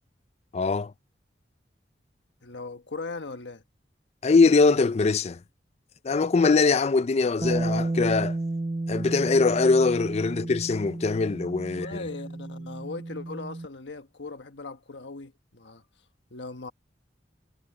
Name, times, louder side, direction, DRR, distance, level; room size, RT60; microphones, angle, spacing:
voice 1, 0.5-0.9 4.2-5.4 6.0-8.4 8.9-12.0, left 4 dB, 35° left, 0.4 m, -22 dB
voice 2, 2.4-3.6 11.7-15.8 16.3-16.7, left 3 dB, 80° left, 1.4 m, -39 dB
Bass guitar, 7.4-13.7, right 2 dB, 30° right, 0.6 m, -32 dB
head